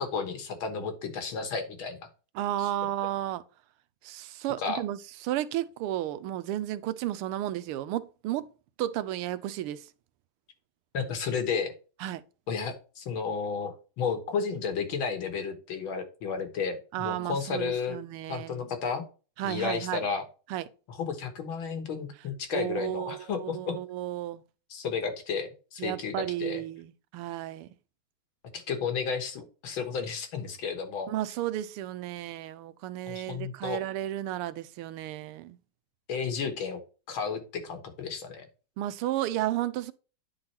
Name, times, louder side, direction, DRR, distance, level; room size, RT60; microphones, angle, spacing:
voice 1, 0.0-2.0 4.6-4.8 10.9-11.7 12.5-18.0 18.3-19.0 19.4-20.2 20.9-23.8 24.7-26.1 26.4-26.6 28.5-31.1 33.1-33.8 36.1-36.8 37.1-38.4, left 5 dB, 70° left, 2.0 m, -32 dB
voice 2, 2.3-3.4 4.0-8.5 8.8-9.9 12.0-12.2 16.9-18.7 19.4-20.0 20.5-20.7 22.5-24.4 25.8-27.7 31.1-35.6 38.8-39.9, right 13 dB, 90° right, 1.5 m, -33 dB
9.6 x 3.9 x 4.2 m
omnidirectional pair, 2.4 m